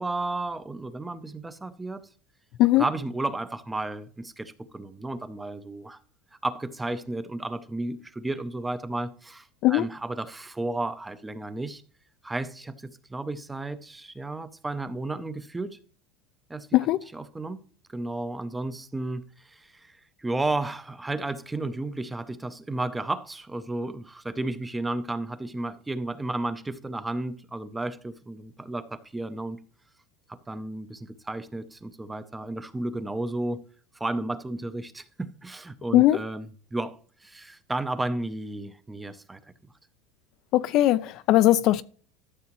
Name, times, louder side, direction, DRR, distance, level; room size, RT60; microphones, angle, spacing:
voice 1, 0.0-2.1 2.8-6.0 6.4-11.8 12.2-15.8 16.5-16.7 17.1-17.6 17.9-29.6 30.3-33.6 33.9-39.4, right 2 dB, 10° right, 0.6 m, -33 dB
voice 2, 40.5-41.8, left 15 dB, 45° left, 0.4 m, -19 dB
13.0 x 7.0 x 3.0 m
supercardioid pair, 155°, 0 cm